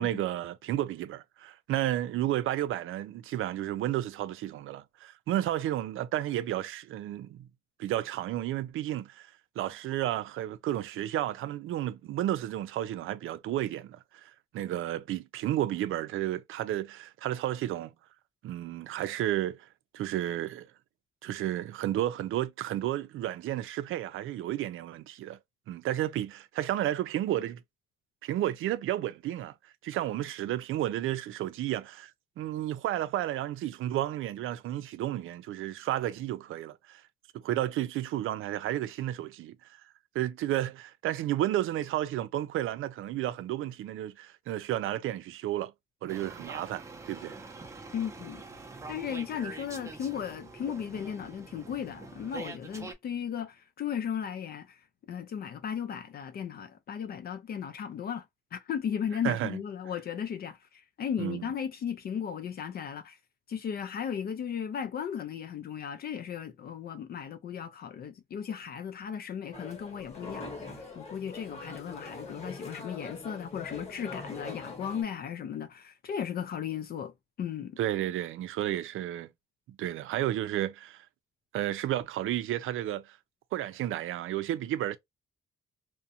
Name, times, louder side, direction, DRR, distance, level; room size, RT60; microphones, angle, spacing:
voice 1, 0.0-7.5 7.8-9.3 9.6-17.9 18.4-19.7 19.9-20.7 21.2-25.4 25.7-27.6 28.2-29.5 29.8-32.1 32.4-37.0 37.4-39.7 40.1-45.7 46.0-47.4 59.2-59.6 61.2-61.5 77.8-79.3 79.7-81.1 81.5-83.2 83.5-85.0, right 13 dB, 75° right, 0.4 m, -32 dB
sound 1, 46.1-52.9, right 3 dB, 15° right, 0.5 m, -45 dB
voice 2, 47.9-48.4 48.9-54.8 55.1-58.3 58.5-63.2 63.5-77.1 77.4-77.8, left 8 dB, 50° left, 0.4 m, -36 dB
sound 2, 69.5-75.0, left 3 dB, 30° left, 1.1 m, -43 dB
2.5 x 2.1 x 2.7 m
cardioid pair, 135°, 21 cm